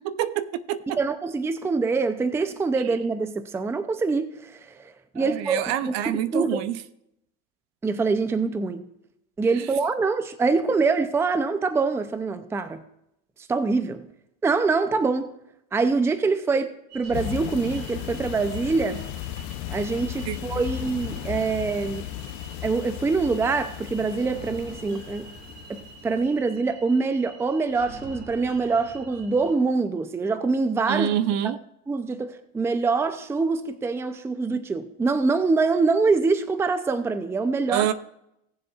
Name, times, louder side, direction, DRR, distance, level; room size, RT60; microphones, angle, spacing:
voice 1, 0.0-1.0 2.8-2.9 5.2-6.8 9.6-9.7 20.3-20.4 30.9-31.6 37.7-37.9, right 11 dB, 55° right, 0.6 m, -27 dB
voice 2, 1.0-6.6 7.8-8.9 9.4-12.8 13.5-14.1 14.4-15.4 15.7-19.0 19.7-22.1 22.6-25.3 25.7-31.1 31.9-37.9, right 4 dB, 10° right, 0.5 m, -25 dB
sound 1, 16.9-29.5, right 2 dB, 30° right, 2.1 m, -45 dB
sound 2, 17.1-26.2, left 14 dB, 60° left, 0.7 m, -36 dB
18.0 x 7.3 x 2.4 m
cardioid pair, 135°, 32 cm